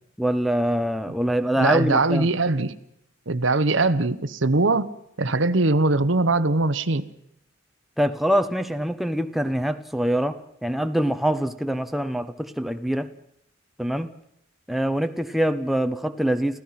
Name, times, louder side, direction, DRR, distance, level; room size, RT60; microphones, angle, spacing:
voice 1, 0.2-2.3 8.0-13.1 13.8-14.1 14.7-16.6, equal, ahead, 8 dB, 0.8 m, -24 dB
voice 2, 1.6-2.7 3.3-4.9 5.2-7.1, right 3 dB, 70° right, 12 dB, 1.1 m, -21 dB
29.5 x 15.5 x 5.8 m, 0.74 s
head